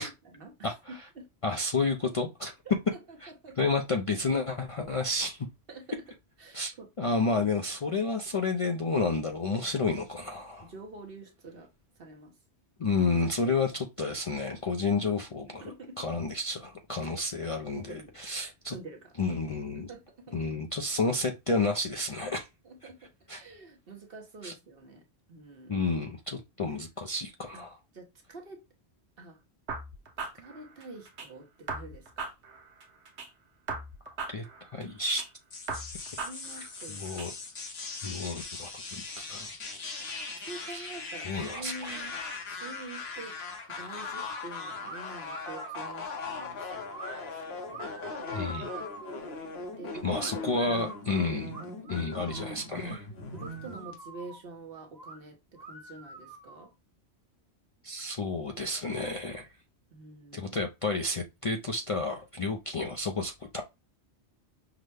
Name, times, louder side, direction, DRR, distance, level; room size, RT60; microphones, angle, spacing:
voice 1, 0.0-1.3 2.6-2.7 3.1-3.2 3.4-3.7 5.7-5.9 6.4-6.9 9.5-9.7 10.7-11.7 12.0-12.3 13.4-13.5 15.5-16.2 17.0-17.5 17.7-18.1 18.7-19.1 19.7-20.3 22.6-25.0 25.3-25.8 27.5-27.6 27.9-28.6 29.2-29.4 30.3-32.3 36.2-37.4 40.4-42.1 42.5-43.3 43.7-48.0 49.7-50.5 53.3-56.7 59.9-60.6, right 3 dB, 60° right, 1.3 m, -47 dB
voice 2, 0.6-1.1 1.4-2.5 3.2-3.3 3.6-5.5 6.5-10.7 12.8-18.8 19.2-19.9 20.3-22.5 23.3-23.4 24.4-24.5 25.7-27.8 34.1-34.4 34.7-35.2 36.6-37.3 38.0-39.0 39.3-39.5 40.7-40.9 41.2-42.2 48.3-48.7 50.0-51.6 51.9-53.1 57.8-59.5 60.3-63.6, left 3 dB, 45° left, 0.5 m, -31 dB
sound 1, 29.7-31.3 31.7-33.3 33.7-35.3 35.7-37.3, right 3 dB, 90° right, 1.2 m, -39 dB
sound 2, 35.5-53.9, left 3 dB, 70° left, 1.3 m, -40 dB
sound 3, 44.8-45.0 45.3-46.0 46.9-47.2 47.7-49.2 50.2-51.0 51.5-52.4 52.9-53.0 53.3-54.4 54.9-55.2 55.6-56.7, right 2 dB, 40° right, 1.2 m, -45 dB
5.9 x 2.2 x 3.3 m
omnidirectional pair, 1.1 m